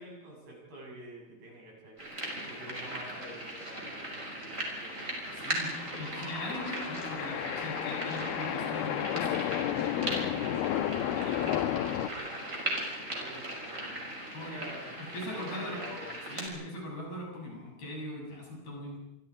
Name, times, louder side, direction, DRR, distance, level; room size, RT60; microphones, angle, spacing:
voice 1, 0.0-2.0 2.4-5.1 13.0-16.3, right 1 dB, 50° right, -2 dB, 8.7 m, -48 dB
sound 1, 2.0-16.5, right 1 dB, 15° right, 6.2 m, -38 dB
voice 2, 5.4-10.7 11.1-11.9 14.3-14.6 15.0-15.8 16.3-19.0, left 1 dB, 50° left, -2 dB, 9.3 m, -41 dB
sound 2, 5.7-12.1, left 11 dB, 75° left, 2.5 m, -32 dB
28.5 x 25.5 x 4.9 m, 0.87 s
omnidirectional pair, 5.6 m